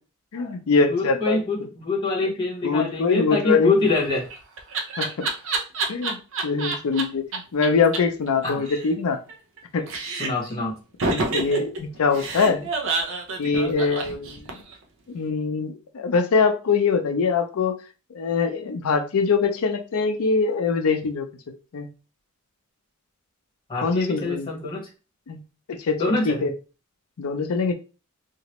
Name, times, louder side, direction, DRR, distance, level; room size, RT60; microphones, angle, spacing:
voice 1, 0.3-1.4 2.6-3.7 5.0-5.3 5.9-6.2 6.4-7.2 7.5-9.2 9.7-9.8 11.1-12.7 13.4-14.6 15.1-17.7 18.1-21.3 21.7-21.9 23.8-24.5 25.3-25.4 25.7-26.5 27.2-27.7, left 4 dB, 80° left, 6 dB, 0.5 m, -23 dB
voice 2, 0.9-4.2 8.4-8.7 10.2-10.7 23.7-24.9 26.0-26.5, left 3 dB, 25° left, -3 dB, 1.2 m, -25 dB
Laughter, 3.9-7.0 7.3-7.4 7.6-7.7 7.9-8.0 8.3-9.6 9.9-10.5 11.0-14.7, right 3 dB, 65° right, 0.6 m, -28 dB
2.9 x 2.5 x 3.0 m, 0.33 s
head